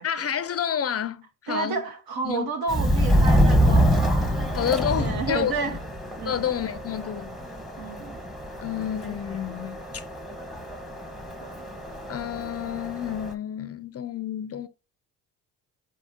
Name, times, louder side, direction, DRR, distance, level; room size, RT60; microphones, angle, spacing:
voice 1, 0.0-1.8 2.2-2.5 4.5-5.8 6.2-7.4 8.6-10.0 12.1-14.7, left 9 dB, 35° left, 0.5 m, -29 dB
voice 2, 1.5-3.9 4.4-5.8 6.2-6.5 7.8-8.2 11.4-11.7, right 4 dB, 60° right, 1.1 m, -31 dB
Subway metro underground, 2.7-13.3, equal, ahead, 0.9 m, -26 dB
4.8 x 4.1 x 2.6 m
supercardioid pair, 70°, 41 cm